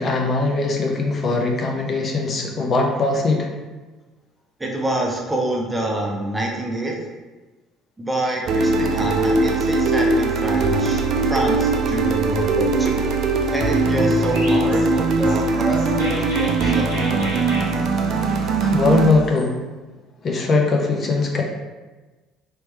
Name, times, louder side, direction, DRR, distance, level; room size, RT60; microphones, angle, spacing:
voice 1, 0.0-3.5 18.6-19.5 20.2-21.4, left 3 dB, 45° left, 1 dB, 0.6 m, -20 dB
voice 2, 4.6-7.1 8.0-13.0 13.5-17.4, right 1 dB, 15° right, -1 dB, 0.8 m, -26 dB
sound 1, 8.5-19.1, right 3 dB, 55° right, 0.4 m, -20 dB
Chirp tweet, 14.3-19.5, equal, 85° left, 1.3 m, -35 dB
3.1 x 3.1 x 3.4 m, 1.2 s
hypercardioid pair, 60°, 0 cm